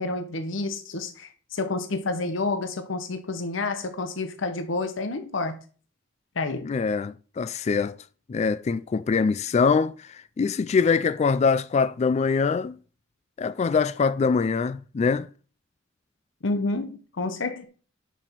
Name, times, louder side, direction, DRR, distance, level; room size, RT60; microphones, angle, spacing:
voice 1, 0.0-5.6 6.4-6.7 16.4-17.6, left 3 dB, 70° left, 0.9 m, -29 dB
voice 2, 6.6-8.0 8.3-12.8 13.4-15.3, left 5 dB, 35° left, 0.3 m, -23 dB
10.5 x 6.1 x 4.5 m
head